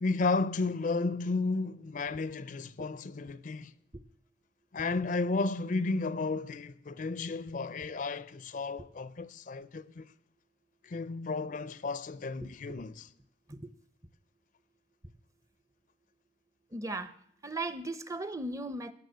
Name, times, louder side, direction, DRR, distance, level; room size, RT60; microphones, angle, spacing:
voice 1, 0.0-3.7 4.7-10.1 10.8-13.1, left 3 dB, 45° left, 0.5 m, -33 dB
voice 2, 16.7-17.1 17.4-18.9, right 2 dB, 20° right, 0.6 m, -37 dB
17.0 x 6.9 x 7.9 m
head